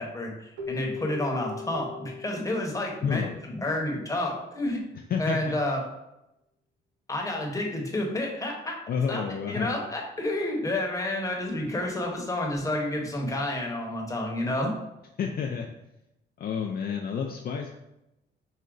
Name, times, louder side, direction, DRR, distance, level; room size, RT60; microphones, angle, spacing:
voice 1, 0.0-4.8 5.2-5.8 7.1-8.7 9.1-14.7, left 1 dB, 15° left, 0 dB, 1.0 m, -30 dB
Keyboard (musical), 0.6-3.8, left 5 dB, 80° right, 0.8 m, -40 dB
voice 2, 3.0-3.4 5.1-5.6 8.9-9.7 15.2-15.7 16.4-17.7, left 6 dB, 50° left, 1 dB, 0.4 m, -29 dB
4.7 x 2.1 x 3.8 m, 0.89 s
cardioid pair, 90°, 20 cm